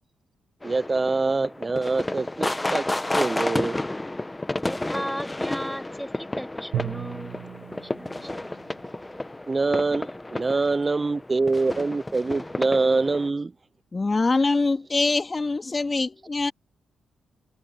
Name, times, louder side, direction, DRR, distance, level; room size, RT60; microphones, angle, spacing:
sound 1, 0.6-13.3, left 2 dB, 20° left, 1.3 m, -31 dB
voice 1, 0.6-2.9 3.1-3.8 8.3-8.4 9.5-13.5, right 3 dB, 35° right, 0.6 m, -25 dB
voice 2, 4.6-7.4 7.8-8.5, equal, ahead, 6.4 m, -35 dB
Drum, 6.7-9.1, right 12 dB, 80° right, 1.2 m, -35 dB
voice 3, 13.9-16.5, left 3 dB, 35° left, 3.2 m, -24 dB
supercardioid pair, 50°, 0 cm